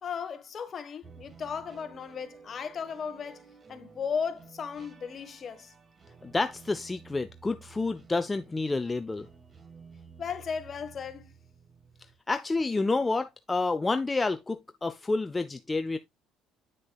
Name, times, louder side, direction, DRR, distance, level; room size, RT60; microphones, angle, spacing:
voice 1, 0.0-5.7 10.2-11.3, left 6 dB, 40° left, 1.3 m, -36 dB
sound 1, 1.0-12.1, right 5 dB, 30° right, 1.5 m, -54 dB
voice 2, 6.2-9.3 12.3-16.0, left 3 dB, 15° left, 0.5 m, -29 dB
9.1 x 6.5 x 2.3 m
cardioid pair, 110°, 0 cm